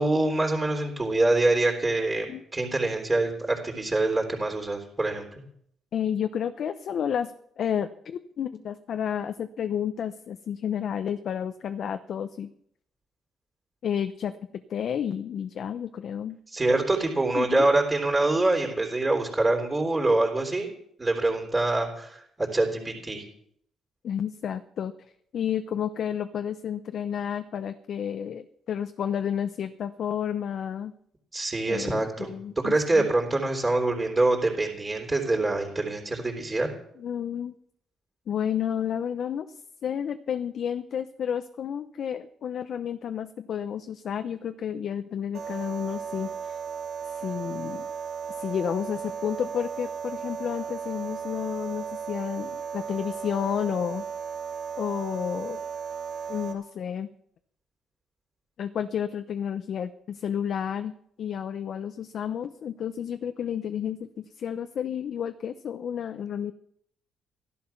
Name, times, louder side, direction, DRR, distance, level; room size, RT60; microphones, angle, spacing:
voice 1, 0.0-2.3 2.5-5.4 16.5-20.7 21.0-23.3 31.3-36.7, right 2 dB, 20° right, 2 dB, 3.6 m, -25 dB
voice 2, 5.9-12.5 13.8-14.4 14.7-16.4 17.3-17.7 24.0-24.9 25.3-30.9 31.7-33.1 37.0-37.5 38.3-39.5 39.8-46.6 47.1-47.9 48.4-54.0 54.8-55.6 56.3-57.1 58.6-66.5, left 8 dB, 65° left, 10 dB, 0.8 m, -31 dB
sound 1, 45.3-56.5, right 7 dB, 80° right, 3.1 m, -35 dB
14.5 x 11.5 x 5.9 m, 0.70 s
cardioid pair, 90°, 0 cm